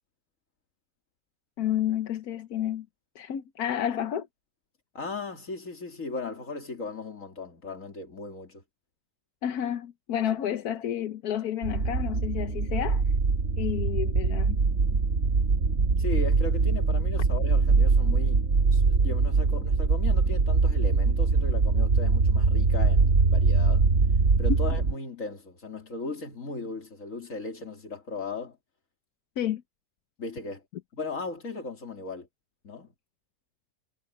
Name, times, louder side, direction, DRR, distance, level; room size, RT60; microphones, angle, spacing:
voice 1, 1.6-2.9 3.1-4.3 9.4-13.0 13.6-14.6 29.4-29.6, left 10 dB, 85° left, 1.4 m, -30 dB
voice 2, 4.9-8.6 16.0-23.9 24.4-28.6 30.2-30.6 30.9-32.3 32.6-32.9, left 3 dB, 60° left, 3.1 m, -37 dB
sound 1, 11.6-24.9, right 4 dB, 55° right, 1.8 m, -23 dB
omnidirectional pair, 1.6 m